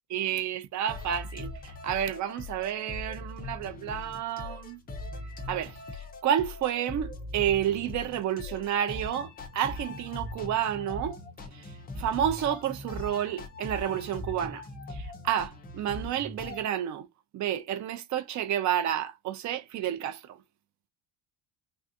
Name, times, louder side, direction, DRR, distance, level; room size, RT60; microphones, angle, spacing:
voice 1, 0.1-4.8 5.5-11.2 11.5-17.1 17.3-20.4, right 10 dB, 40° right, 0.5 m, -30 dB
sound 1, 0.9-16.6, left 2 dB, 20° left, 0.4 m, -41 dB
3.4 x 2.6 x 2.6 m
cardioid pair, 170°, 46 cm